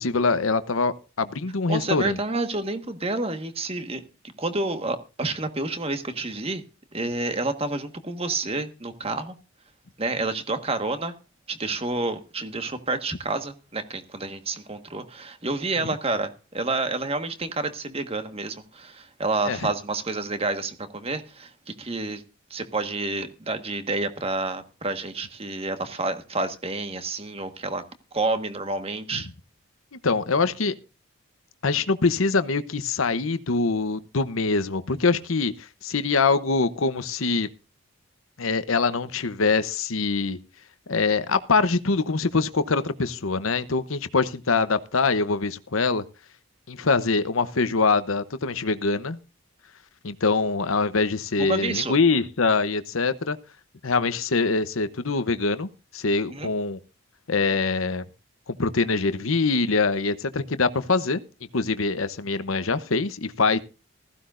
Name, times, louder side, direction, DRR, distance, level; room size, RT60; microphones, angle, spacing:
voice 1, 0.0-2.2 19.5-19.7 29.1-29.2 30.0-30.7 31.6-37.5 38.4-40.4 40.9-46.0 46.7-49.2 50.0-53.4 53.8-56.8 57.3-58.0 58.5-61.2 61.5-63.6, left 4 dB, 70° left, 13 dB, 0.9 m, -24 dB
voice 2, 1.7-4.0 4.4-6.6 6.9-9.3 10.0-11.1 11.5-22.2 22.5-27.8 28.1-29.3 51.4-52.0 56.3-56.5, right 3 dB, 30° right, 8 dB, 1.5 m, -29 dB
15.5 x 15.0 x 2.6 m, 0.31 s
head